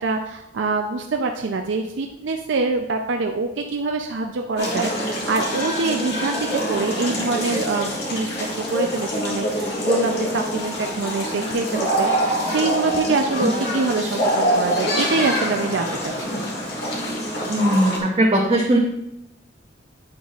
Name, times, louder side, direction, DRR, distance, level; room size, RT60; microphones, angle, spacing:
voice 1, 0.0-16.4, right 3 dB, 75° right, 4 dB, 0.5 m, -25 dB
sound 1, 4.6-18.0, equal, 60° left, 1.9 m, -25 dB
voice 2, 17.5-18.8, right 1 dB, 30° right, -2 dB, 0.7 m, -19 dB
9.0 x 7.1 x 2.4 m, 0.86 s
head